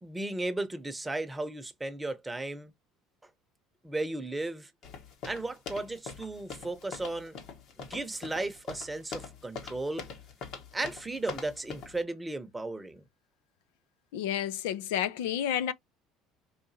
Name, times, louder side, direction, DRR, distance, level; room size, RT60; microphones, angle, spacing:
voice 1, 0.0-2.7 3.8-4.7 5.2-7.4 7.8-10.1 10.7-13.0, right 2 dB, 10° right, 0.8 m, -35 dB
sound 1, 4.8-12.0, left 5 dB, 65° left, 1.3 m, -43 dB
voice 2, 14.1-15.7, left 10 dB, 90° left, 0.4 m, -30 dB
4.9 x 2.5 x 2.7 m
supercardioid pair, 105°, 0 cm